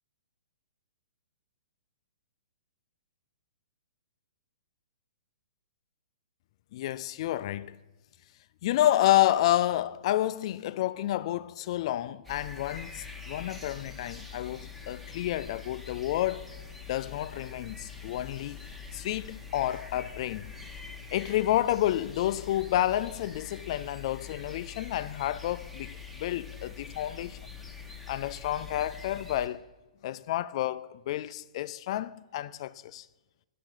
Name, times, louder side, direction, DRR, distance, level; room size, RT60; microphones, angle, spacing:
voice 1, 6.7-7.8 8.6-16.5 16.9-18.6 18.9-20.5 21.1-27.4 28.1-29.7 30.0-33.1, left 13 dB, 50° left, 0.3 m, -30 dB
sound 1, 12.2-29.5, left 6 dB, ahead, 0.9 m, -44 dB
7.3 x 6.6 x 6.0 m
hypercardioid pair, 130°, 4 cm